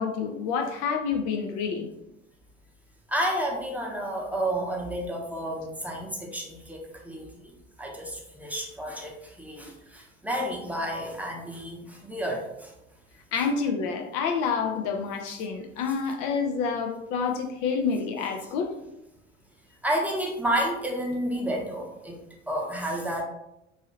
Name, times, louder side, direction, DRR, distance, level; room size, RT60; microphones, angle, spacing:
voice 1, 0.0-1.9 13.3-18.7, left 5 dB, 60° left, 4 dB, 0.5 m, -28 dB
voice 2, 3.1-7.2 7.8-12.7 13.4-13.5 19.8-22.2 22.5-23.2, right 1 dB, 5° right, -1 dB, 0.7 m, -30 dB
3.1 x 2.6 x 2.7 m, 0.88 s
hypercardioid pair, 60°, 34 cm